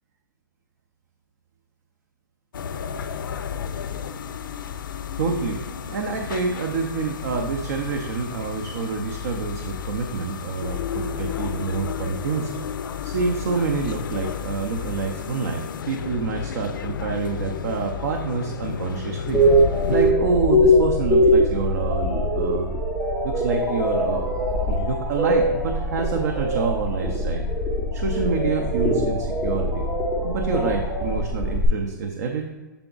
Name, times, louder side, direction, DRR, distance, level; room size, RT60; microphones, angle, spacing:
sound 1, 2.5-20.1, left 8 dB, 70° left, 0.4 m, -32 dB
voice 1, 5.2-12.5 13.0-19.4 19.9-22.7 23.2-24.3 24.7-27.4 27.9-29.8 30.2-32.4, right 5 dB, 50° right, 2 dB, 0.6 m, -27 dB
sound 2, 19.3-31.7, equal, ahead, 0.4 m, -22 dB
6.9 x 3.5 x 3.9 m, 1.3 s
hypercardioid pair, 165°, 11 cm